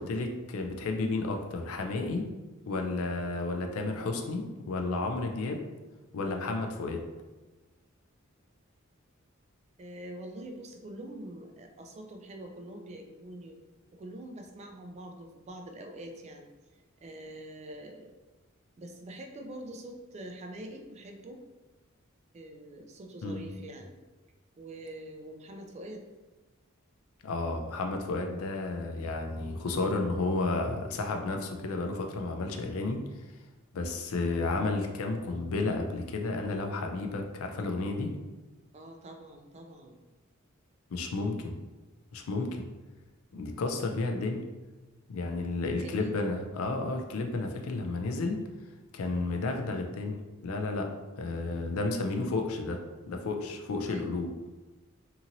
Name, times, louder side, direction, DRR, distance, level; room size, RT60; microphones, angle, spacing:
voice 1, 0.0-2.3 2.7-5.6 6.1-7.0 23.2-23.5 27.2-33.0 33.7-38.1 40.9-41.6 42.1-42.7 43.3-44.4 45.1-48.4 48.9-50.9 51.2-52.8 53.1-54.3, left 3 dB, 80° left, 4 dB, 0.4 m, -32 dB
voice 2, 9.8-13.6 13.9-16.5 17.0-18.1 18.8-21.4 22.3-24.0 24.6-26.0 38.7-40.0 45.6-46.2 53.9-54.3, right 1 dB, 30° right, 3 dB, 0.3 m, -44 dB
2.8 x 2.8 x 2.5 m, 1.2 s
head